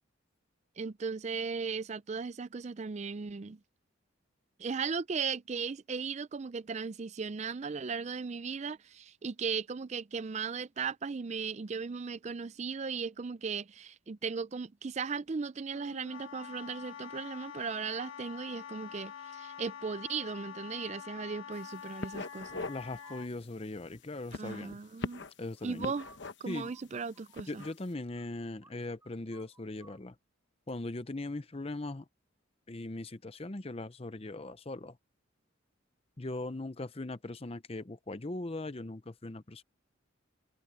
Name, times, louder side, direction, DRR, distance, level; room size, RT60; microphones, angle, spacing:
voice 1, 0.8-3.6 4.6-22.6 24.3-25.2 25.6-26.1 26.4-27.6, right 5 dB, 35° right, 0.4 m, -37 dB
Wind instrument woodwind instrument, 15.7-23.3, left 8 dB, 75° left, 1.6 m, -46 dB
sound 1, 21.5-21.7 22.0-22.8 23.2-23.4 24.2-25.4 25.8-26.6 27.2-27.7, left 2 dB, 55° left, 1.0 m, -41 dB
voice 2, 22.7-24.8 25.4-25.9 26.5-26.7 27.5-30.1 30.7-32.0 32.7-35.0 36.2-39.6, left 2 dB, 30° left, 0.7 m, -40 dB
sound 2, 22.7-23.3 25.6-28.3 28.6-28.8 29.0-30.0, right 3 dB, 15° right, 3.6 m, -58 dB
head